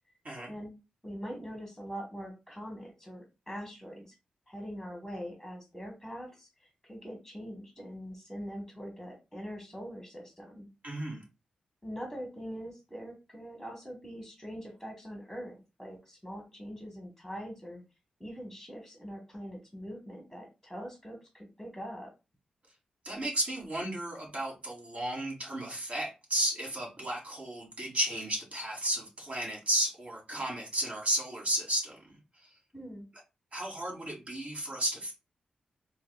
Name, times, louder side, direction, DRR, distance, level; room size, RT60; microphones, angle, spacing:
voice 1, 1.0-4.1 4.5-10.7 11.8-17.8 18.2-22.1 32.7-33.1, equal, ahead, 0 dB, 1.1 m, -43 dB
voice 2, 10.8-11.2 23.0-32.2 33.5-35.1, right 1 dB, 55° right, -1 dB, 1.7 m, -33 dB
4.5 x 2.4 x 2.3 m, 0.28 s
cardioid pair, 70°, 3 cm